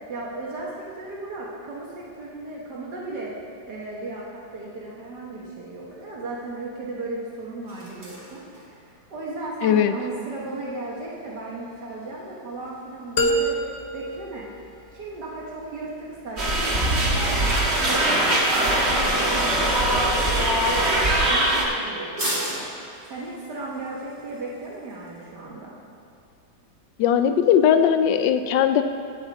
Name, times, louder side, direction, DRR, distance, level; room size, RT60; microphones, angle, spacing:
voice 1, 0.1-3.3 3.7-13.6 13.9-14.5 14.9-25.8, right 2 dB, 70° right, -4 dB, 1.9 m, -36 dB
sound 1, 5.7-25.3, right 1 dB, 25° right, 2.6 m, -42 dB
voice 2, 9.6-9.9 27.0-28.8, left 9 dB, 90° left, 9 dB, 1.3 m, -19 dB
sound 2, 13.2-15.2, right 1 dB, 55° left, 0.8 m, -26 dB
sound 3, 16.4-21.7, right 1 dB, 40° right, 1.6 m, -21 dB
16.5 x 7.0 x 4.1 m, 2.6 s
omnidirectional pair, 1.9 m